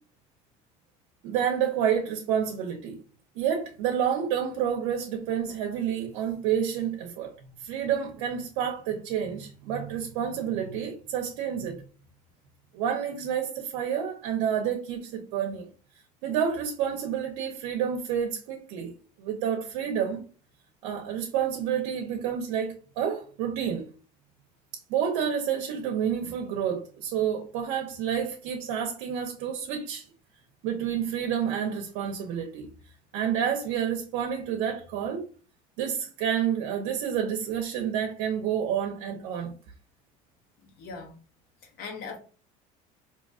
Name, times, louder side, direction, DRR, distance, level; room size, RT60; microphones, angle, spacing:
voice 1, 1.2-3.0 3.3-11.8 12.7-15.7 16.2-18.9 19.2-20.2 20.8-23.9 24.9-30.1 30.6-32.7 33.1-35.3 35.8-39.5, right 8 dB, 85° right, 0.8 m, -29 dB
voice 2, 40.6-41.2 41.6-42.2, left 4 dB, 60° left, 1.2 m, -40 dB
4.1 x 2.9 x 2.4 m
supercardioid pair, 110°, 18 cm